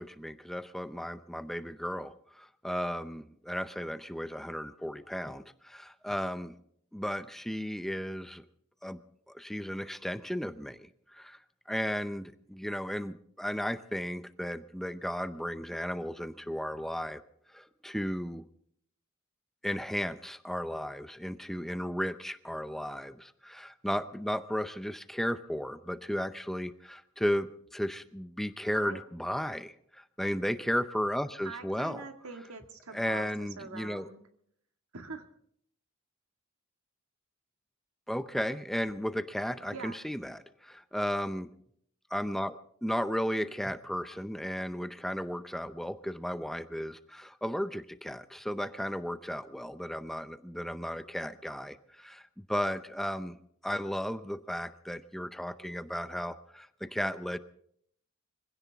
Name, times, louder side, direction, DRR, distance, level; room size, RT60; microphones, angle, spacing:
voice 1, 0.0-6.5 6.9-8.4 8.8-9.0 9.3-11.4 11.7-17.2 17.5-18.5 19.6-32.0 32.9-34.1 38.1-41.5 42.1-53.4 53.6-57.4, equal, ahead, 12 dB, 0.5 m, -35 dB
voice 2, 31.4-34.2 34.9-35.3 39.7-40.0, right 4 dB, 85° right, 6 dB, 1.8 m, -43 dB
24.5 x 16.0 x 3.5 m, 0.67 s
head